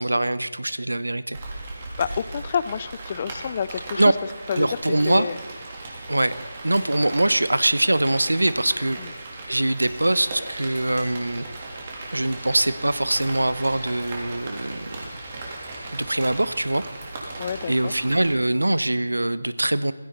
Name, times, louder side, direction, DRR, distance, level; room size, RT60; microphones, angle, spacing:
voice 1, 0.0-1.4 4.0-4.1 4.5-5.3 6.1-6.3 6.6-9.0 9.5-11.4 12.1-15.1 15.9-16.8 17.7-19.9, right 1 dB, 85° right, 16 dB, 0.8 m, -23 dB
Rain, 1.3-18.3, right 2 dB, 30° right, 3.3 m, -37 dB
voice 2, 2.0-4.0 4.5-4.8 5.1-5.4 9.0-9.1 17.4-17.9, left 7 dB, 30° left, 17 dB, 0.4 m, -28 dB
16.5 x 16.0 x 4.1 m, 1.3 s
figure-of-eight pair, 160°, 0 cm